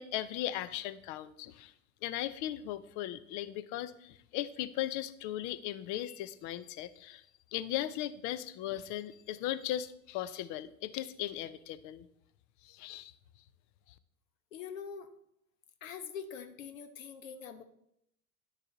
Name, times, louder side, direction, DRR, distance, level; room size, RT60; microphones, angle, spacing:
voice 1, 0.0-1.7 2.0-7.2 7.5-12.1 12.6-13.1, left 13 dB, 45° left, 14 dB, 0.7 m, -37 dB
voice 2, 14.5-15.1 15.8-17.6, left 7 dB, 70° left, 9 dB, 1.1 m, -44 dB
10.5 x 6.5 x 3.9 m, 0.75 s
figure-of-eight pair, 75°, 41 cm